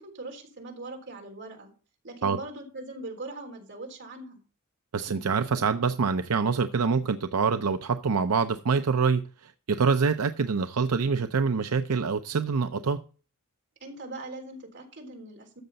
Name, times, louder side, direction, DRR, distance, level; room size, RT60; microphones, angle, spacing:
voice 1, 0.0-1.7 2.0-4.4 13.8-15.6, right 2 dB, 55° right, 3.7 m, -41 dB
voice 2, 4.9-13.0, right 5 dB, 80° right, 0.6 m, -25 dB
13.5 x 7.7 x 4.1 m
head